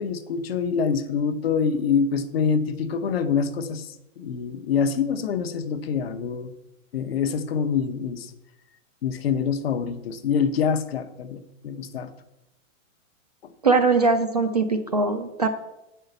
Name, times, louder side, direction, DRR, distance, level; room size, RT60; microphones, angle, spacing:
voice 1, 0.0-6.5 6.9-8.3 9.0-12.1, left 6 dB, 45° left, 9 dB, 0.8 m, -25 dB
voice 2, 13.6-15.5, right 3 dB, 30° right, 6 dB, 0.4 m, -21 dB
8.0 x 5.6 x 7.8 m, 0.90 s
hypercardioid pair, 175°, 40 cm